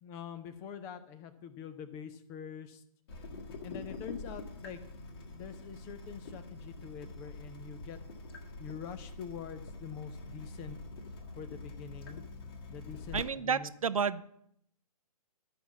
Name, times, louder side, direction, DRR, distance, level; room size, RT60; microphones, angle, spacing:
voice 1, 0.0-2.8 3.6-4.8 5.2-8.0 8.6-10.8 11.4-12.2 12.7-13.7, left 7 dB, 15° left, 11 dB, 0.5 m, -45 dB
Water tap faucet / Drip, 3.1-13.2, left 2 dB, 40° left, 1.6 m, -45 dB
voice 2, 13.1-14.3, right 6 dB, 60° right, 16 dB, 0.5 m, -31 dB
11.0 x 5.9 x 7.2 m, 0.74 s
figure-of-eight pair, 130°, 20 cm